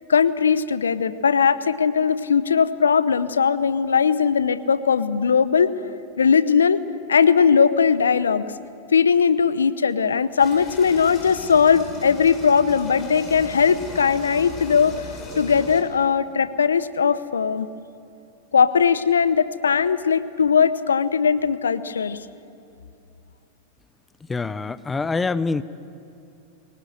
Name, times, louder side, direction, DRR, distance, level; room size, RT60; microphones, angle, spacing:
voice 1, 0.1-6.8 7.1-8.5 8.9-14.9 15.4-17.7 18.5-22.2, left 6 dB, 80° left, 16 dB, 0.8 m, -19 dB
sound 1, 10.4-15.8, left 3 dB, 35° left, 5.4 m, -38 dB
voice 2, 24.3-25.6, left 4 dB, 15° left, 16 dB, 0.7 m, -25 dB
24.0 x 18.5 x 7.9 m, 2.8 s
hypercardioid pair, 95°, 0 cm